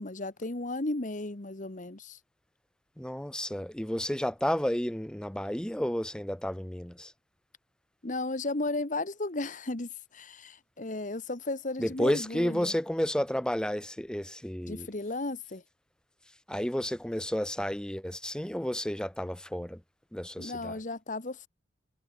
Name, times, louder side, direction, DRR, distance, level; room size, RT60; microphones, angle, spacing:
voice 1, 0.0-2.2 8.0-12.7 14.7-15.6 20.4-21.5, left 2 dB, 45° left, 1.3 m, -34 dB
voice 2, 3.0-7.1 11.8-14.9 16.5-19.8 20.1-20.8, equal, 5° left, 0.6 m, -31 dB
head